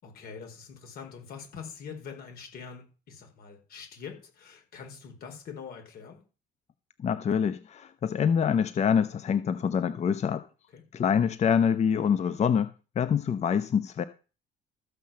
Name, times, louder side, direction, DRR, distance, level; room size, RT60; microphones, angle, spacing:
voice 1, 0.0-6.2 10.7-10.8, left 6 dB, 65° left, 4.8 m, -44 dB
voice 2, 7.0-10.4 10.9-12.7 13.0-14.0, left 7 dB, 40° left, 0.8 m, -25 dB
14.0 x 5.7 x 7.6 m
cardioid pair, 110°, 17 cm